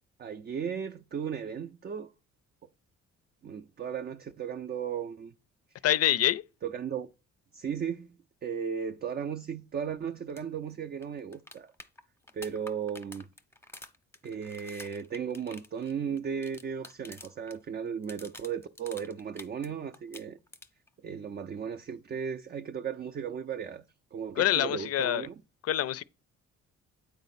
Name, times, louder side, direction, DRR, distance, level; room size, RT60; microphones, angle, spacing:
voice 1, 0.2-2.1 3.4-5.3 5.7-5.9 6.6-7.1 7.5-11.7 12.3-13.3 14.2-20.4 21.0-23.8 24.1-25.4, right 7 dB, 35° right, 0.4 m, -36 dB
voice 2, 5.8-6.4 24.4-25.2 25.7-26.0, left 12 dB, 55° left, 0.4 m, -25 dB
sound 1, 10.3-10.4 10.7-10.8 11.0-17.6 17.9-19.7 19.9-20.9 22.9-23.0, left 2 dB, 10° left, 0.7 m, -49 dB
9.1 x 4.1 x 4.1 m
cardioid pair, 90°, 30 cm